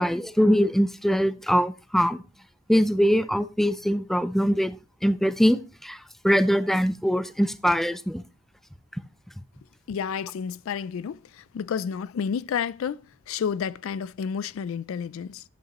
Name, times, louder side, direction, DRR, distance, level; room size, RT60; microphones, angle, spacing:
voice 1, 0.0-2.2 2.7-4.8 5.0-6.0 6.2-8.2, equal, ahead, 0.4 m, -22 dB
voice 2, 9.9-15.4, left 7 dB, 70° left, 0.3 m, -30 dB
10.5 x 8.2 x 2.9 m
head